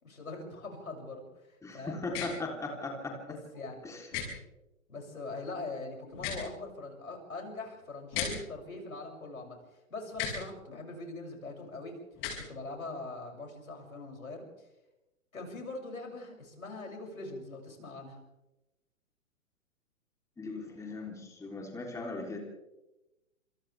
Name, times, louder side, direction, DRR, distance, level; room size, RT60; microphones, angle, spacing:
voice 1, 0.0-2.0 3.1-3.8 4.1-4.2 4.9-9.6 9.9-12.0 12.4-14.7 15.3-18.2, left 3 dB, 75° left, 1 dB, 7.3 m, -42 dB
voice 2, 1.6-3.2 3.8-4.1 20.4-22.4, left 2 dB, 5° left, 1 dB, 3.5 m, -38 dB
sound 1, 2.1-2.3 4.1-4.3 6.1-6.5 8.1-8.3 10.1-10.4 12.1-12.4, left 8 dB, 30° left, 6.9 m, -34 dB
29.0 x 27.0 x 3.5 m, 0.99 s
figure-of-eight pair, 125°, 41 cm